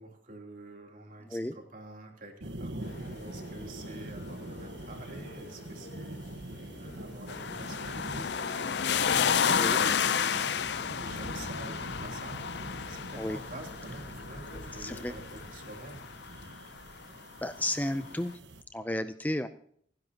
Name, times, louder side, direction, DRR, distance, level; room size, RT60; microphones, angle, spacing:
voice 1, 0.0-6.2 6.7-8.8 9.1-10.6 11.0-16.1, right 2 dB, 45° right, 1 dB, 3.3 m, -48 dB
sound 1, 2.4-18.6, right 1 dB, 75° right, 1.3 m, -44 dB
sound 2, 2.8-16.0, left 2 dB, 90° left, 3.3 m, -51 dB
sound 3, 7.3-16.3 17.6-17.7, left 7 dB, 65° left, 0.5 m, -31 dB
voice 2, 14.8-15.1 17.4-18.3 18.7-19.5, left 1 dB, 10° left, 10 dB, 0.5 m, -32 dB
28.5 x 10.5 x 2.9 m, 0.63 s
head